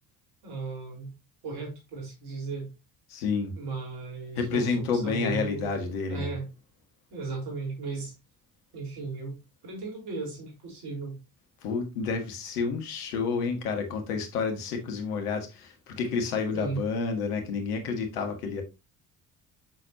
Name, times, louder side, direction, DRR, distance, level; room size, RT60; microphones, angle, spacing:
voice 1, 0.4-1.1 1.4-2.7 3.6-6.4 7.1-8.1 8.7-9.4 9.6-11.2 16.5-16.8, right 4 dB, 60° right, 4.3 m, -36 dB
voice 2, 3.1-3.5 4.4-6.3 11.6-18.6, left 5 dB, 75° left, 1.8 m, -30 dB
7.1 x 6.5 x 2.8 m
hypercardioid pair, 55°, 45 cm